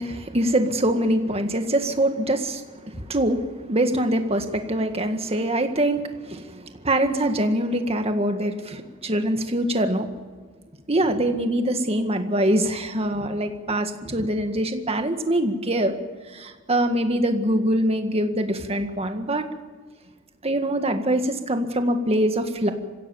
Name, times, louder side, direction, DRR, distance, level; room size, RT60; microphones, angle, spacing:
voice 1, 0.0-10.1 10.9-16.0 16.3-19.4 20.4-22.7, right 1 dB, 30° right, 6 dB, 1.8 m, -24 dB
25.5 x 16.5 x 7.2 m, 1.5 s
head